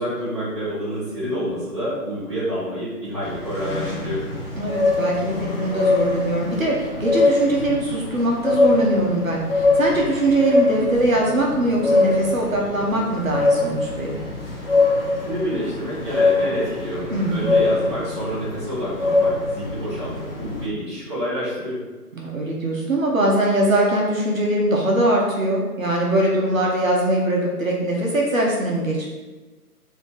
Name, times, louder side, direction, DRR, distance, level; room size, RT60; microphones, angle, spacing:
voice 1, 0.0-4.2 15.2-21.8, equal, 20° right, -12 dB, 0.9 m, -28 dB
sound 1, 3.2-20.7, left 3 dB, 40° left, 0.6 m, -23 dB
voice 2, 4.5-14.2 17.1-17.6 22.1-29.1, right 1 dB, 60° right, -3 dB, 0.8 m, -22 dB
4.1 x 2.7 x 3.1 m, 1.2 s
figure-of-eight pair, 155°, 47 cm